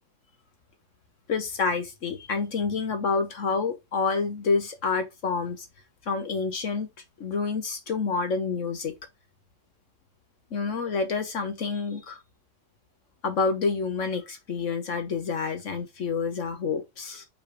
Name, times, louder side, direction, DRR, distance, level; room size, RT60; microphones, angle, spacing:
voice 1, 1.3-5.7 6.1-6.9 7.2-8.9 10.5-12.2 13.2-17.2, left 4 dB, 50° left, 1.2 m, -28 dB
5.7 x 3.3 x 5.0 m
omnidirectional pair, 1.8 m